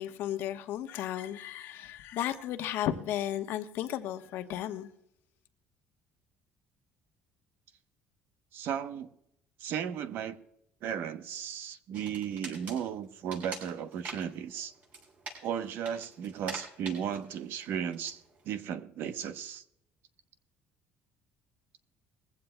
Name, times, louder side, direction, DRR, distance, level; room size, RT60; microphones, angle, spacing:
voice 1, 0.0-4.9, left 11 dB, 70° left, 1.1 m, -34 dB
voice 2, 8.5-9.1 9.6-10.4 10.8-14.7 15.4-19.6, right 8 dB, 65° right, 0.9 m, -35 dB
sound 1, 11.9-18.6, right 3 dB, 40° right, 6.2 m, -46 dB
21.0 x 15.5 x 2.2 m
cardioid pair, 135°, 4 cm